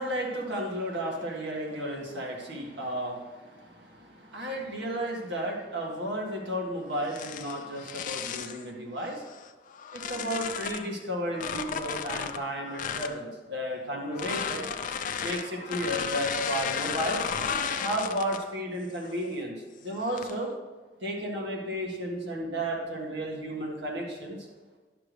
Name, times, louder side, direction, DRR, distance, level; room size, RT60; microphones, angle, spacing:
voice 1, 0.0-9.3 9.9-14.7 15.2-17.2 17.8-20.5 21.0-24.4, equal, 75° right, -1 dB, 1.8 m, -33 dB
sound 1, 7.0-8.6 9.3-10.9 11.3-13.2 14.1-18.5 19.0-19.3 19.9-20.5, left 7 dB, 45° left, 0.4 m, -34 dB
11.0 x 6.0 x 3.2 m, 1.3 s
head